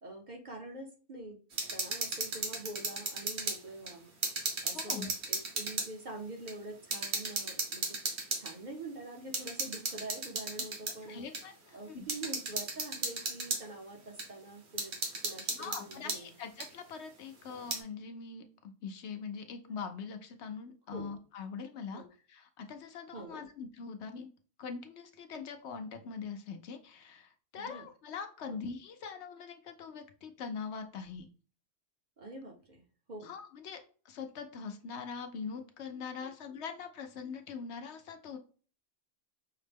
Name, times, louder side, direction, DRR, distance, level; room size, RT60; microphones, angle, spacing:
voice 1, 0.0-1.4 1.7-4.1 4.6-8.0 8.3-11.3 11.7-15.0 15.2-16.3 20.9-21.1 21.9-22.1 23.1-23.4 27.6-27.9 28.5-28.6 32.2-32.8 33.1-33.3 36.2-36.3, right 2 dB, 45° right, 1 dB, 0.8 m, -45 dB
sound 1, 1.5-3.6 3.9-5.9 6.5-6.6 6.9-8.5 9.3-11.0 11.3-11.4 12.1-13.6 14.2-14.3 14.8-16.2 16.6-16.7 17.5-17.8, right 3 dB, 65° right, 1.3 m, -35 dB
voice 2, 4.7-5.1 11.1-12.0 15.5-22.0 22.3-24.3 24.6-31.3 33.2-33.8 34.0-38.4, left 5 dB, 70° left, 6 dB, 0.9 m, -43 dB
5.7 x 2.1 x 3.3 m, 0.39 s
omnidirectional pair, 1.2 m